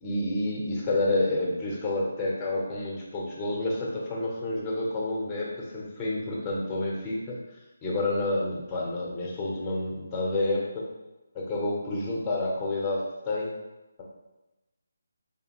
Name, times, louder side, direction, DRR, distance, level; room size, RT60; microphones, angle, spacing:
voice 1, 0.0-7.4 7.8-10.9 11.3-13.5, left 2 dB, 15° left, -3 dB, 0.9 m, -29 dB
3.6 x 3.5 x 3.0 m, 1.0 s
figure-of-eight pair, 155°, 0 cm